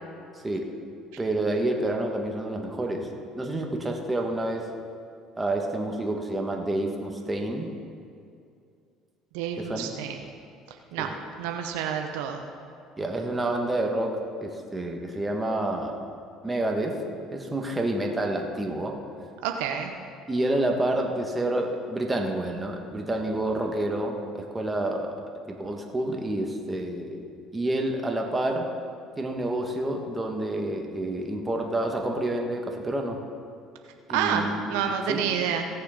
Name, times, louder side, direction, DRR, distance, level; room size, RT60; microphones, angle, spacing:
voice 1, 0.4-0.8 1.2-3.1 3.3-4.6 5.4-7.7 9.6-9.9 11.0-11.1 13.0-15.9 16.4-17.0 17.3-18.9 20.3-25.2 25.5-27.2 27.5-28.7 29.2-33.2 34.1-34.8 35.1-35.2, right 1 dB, 15° right, 2 dB, 1.6 m, -28 dB
voice 2, 9.3-10.2 10.9-11.1 11.4-12.4 19.4-19.9 34.1-35.7, right 8 dB, 85° right, 4 dB, 0.8 m, -28 dB
17.0 x 6.8 x 5.2 m, 2.4 s
supercardioid pair, 85°, 0 cm